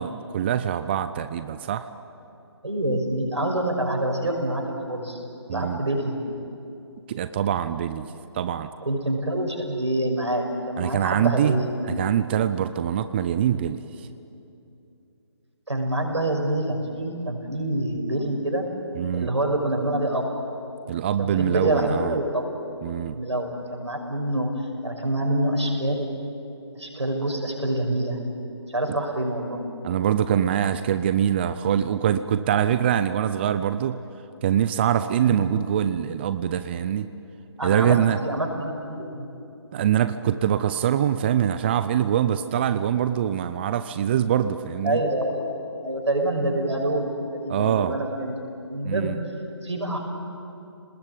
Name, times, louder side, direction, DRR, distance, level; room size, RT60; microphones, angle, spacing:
voice 1, 0.0-1.9 5.5-5.8 7.1-8.7 10.8-11.6 11.9-14.1 19.0-19.3 20.9-22.2 22.8-23.2 29.8-34.0 34.4-37.1 37.6-38.2 39.7-45.0 47.5-47.9 48.8-49.2, right 9 dB, 25° right, 11 dB, 0.6 m, -24 dB
voice 2, 2.6-5.2 5.5-6.2 8.8-11.8 15.7-18.7 19.1-20.3 21.2-22.5 23.1-24.5 24.8-26.1 26.8-28.2 28.7-29.6 35.2-35.6 37.6-39.3 44.8-45.6 45.8-49.1 49.6-50.0, right 1 dB, 90° right, 2 dB, 6.0 m, -26 dB
29.5 x 20.0 x 9.1 m, 2.8 s
figure-of-eight pair, 155°, 14 cm